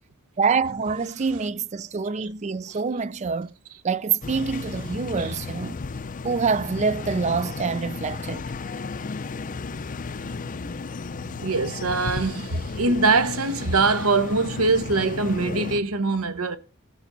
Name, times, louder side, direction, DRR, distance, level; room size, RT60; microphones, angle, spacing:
voice 1, 0.4-3.5 3.8-5.8 6.2-8.4, right 5 dB, 30° right, 0.4 m, -26 dB
sound 1, 4.2-15.8, left 4 dB, 35° left, 0.5 m, -34 dB
voice 2, 11.3-16.6, right 3 dB, 75° right, 1.3 m, -23 dB
16.5 x 5.9 x 3.9 m
head